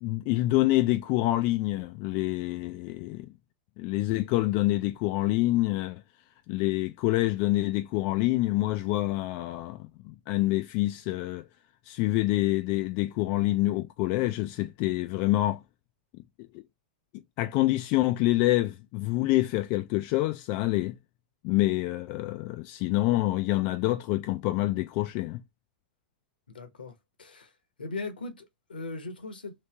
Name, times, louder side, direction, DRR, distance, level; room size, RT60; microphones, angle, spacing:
voice 1, 0.0-3.3 3.8-6.0 6.5-11.4 11.9-15.6 17.4-21.0 21.4-25.4, left 18 dB, 45° left, 0.3 m, -27 dB
voice 2, 26.5-27.5 27.8-29.5, left 3 dB, 80° left, 1.0 m, -39 dB
3.1 x 2.7 x 3.4 m
hypercardioid pair, 100°, 5 cm